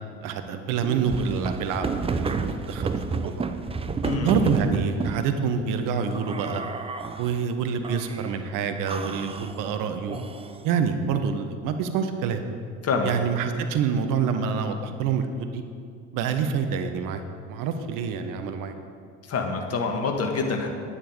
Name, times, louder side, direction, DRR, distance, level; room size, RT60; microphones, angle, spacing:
voice 1, 0.2-3.5 4.2-6.6 7.2-10.2 10.6-12.4 13.0-15.6 16.1-17.2 17.5-18.7, right 6 dB, 55° right, 7 dB, 1.0 m, -27 dB
sound 1, 0.8-5.3 6.1-7.4 7.8-8.4 8.9-10.7, right 4 dB, 15° right, 0.6 m, -31 dB
voice 2, 4.0-4.3 12.8-13.1 19.3-20.7, left 4 dB, 40° left, 3 dB, 1.7 m, -26 dB
10.0 x 9.8 x 5.1 m, 2.3 s
figure-of-eight pair, 60°, 38 cm